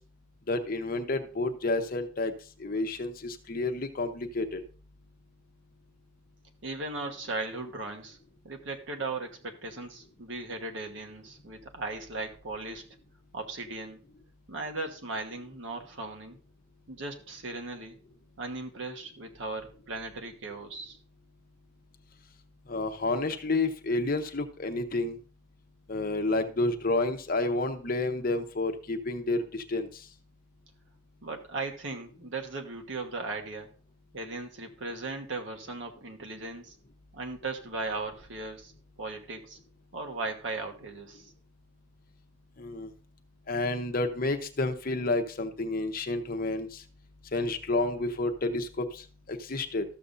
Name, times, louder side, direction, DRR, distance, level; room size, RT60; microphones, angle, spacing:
voice 1, 0.5-2.3 2.6-4.6 22.7-25.2 25.9-29.9 42.6-42.9 43.5-46.7 47.3-48.9 49.3-49.8, left 2 dB, 45° left, 6 dB, 0.8 m, -30 dB
voice 2, 6.6-8.2 8.4-12.8 13.3-14.0 14.5-16.4 16.9-18.0 18.4-21.0 31.2-33.7 34.1-36.7 37.1-38.7 39.0-39.6 39.9-41.3, right 3 dB, 70° right, 3 dB, 1.3 m, -37 dB
13.5 x 6.9 x 2.6 m, 0.38 s
head